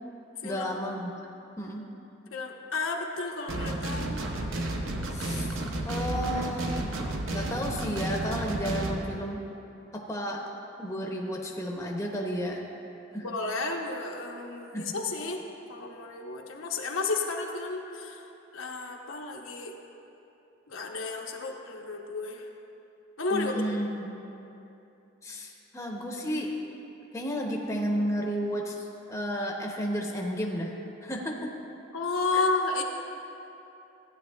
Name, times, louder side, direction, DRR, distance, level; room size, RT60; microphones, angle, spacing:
voice 1, 0.4-1.2 1.6-1.9 5.1-5.5 5.8-6.9 7.3-9.4 9.9-10.4 10.8-12.6 13.1-13.3 14.7-14.9 23.3-24.3 25.2-26.5 27.1-30.7 31.0-31.5 32.3-32.5, equal, 15° left, 0 dB, 0.7 m, -32 dB
voice 2, 2.3-4.3 13.2-15.4 15.7-19.8 20.7-22.5 23.2-23.5 31.9-32.8, left 3 dB, 80° left, 1 dB, 0.9 m, -32 dB
sound 1, 3.5-9.0, right 1 dB, 75° right, 0.8 m, -32 dB
14.5 x 9.3 x 2.3 m, 2.9 s
head